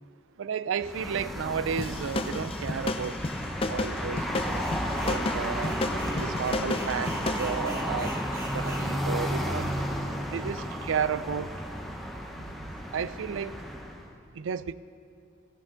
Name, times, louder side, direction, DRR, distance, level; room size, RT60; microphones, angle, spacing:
voice 1, 0.4-3.2 3.7-4.7 5.0-5.8 6.2-8.2 8.5-9.7 10.3-11.6 12.3-13.6 14.3-14.7, right 7 dB, 75° right, 15 dB, 0.4 m, -33 dB
sound 1, 0.8-14.1, equal, ahead, 0.8 m, -33 dB
sound 2, 1.8-7.5, left 2 dB, 30° left, 0.4 m, -32 dB
sound 3, 4.5-5.2 5.6-8.9, right 1 dB, 15° right, 1.4 m, -44 dB
15.5 x 9.7 x 3.8 m, 2.5 s
head